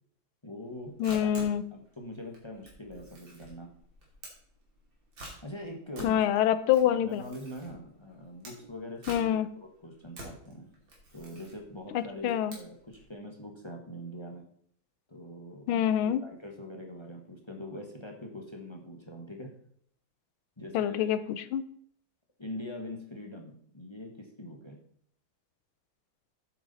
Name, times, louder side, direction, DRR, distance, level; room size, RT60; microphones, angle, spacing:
voice 1, 0.4-1.3 1.7-3.7 5.4-6.3 6.8-10.7 11.1-14.4 15.1-19.5 20.6-21.1 22.4-24.8, left 1 dB, 15° left, 2 dB, 1.0 m, -43 dB
Camera, 0.7-13.1, right 1 dB, 70° right, 3.4 m, -49 dB
voice 2, 1.0-1.6 6.0-7.2 9.1-9.5 11.9-12.5 15.7-16.2 20.7-21.6, left 10 dB, 85° left, 14 dB, 1.5 m, -26 dB
9.1 x 7.7 x 4.1 m, 0.63 s
omnidirectional pair, 2.2 m